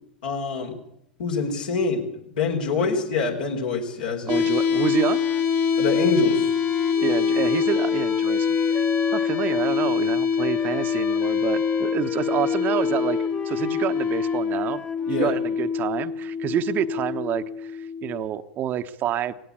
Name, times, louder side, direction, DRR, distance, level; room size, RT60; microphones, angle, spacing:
voice 1, 0.2-0.7 1.2-2.1 2.3-4.3 5.8-6.5 15.1-15.3, left 4 dB, 70° left, 2 dB, 4.5 m, -25 dB
sound 1, 4.3-18.2, left 6 dB, 45° left, 2.1 m, -24 dB
voice 2, 4.3-5.2 7.0-8.9 9.1-13.2 13.4-14.8 15.1-19.3, right 10 dB, 40° right, 10 dB, 1.1 m, -28 dB
Wind instrument woodwind instrument, 4.7-9.7 10.4-15.4, left 4 dB, 20° left, 1.0 m, -36 dB
18.0 x 17.0 x 8.5 m, 0.76 s
figure-of-eight pair, 85°, 5 cm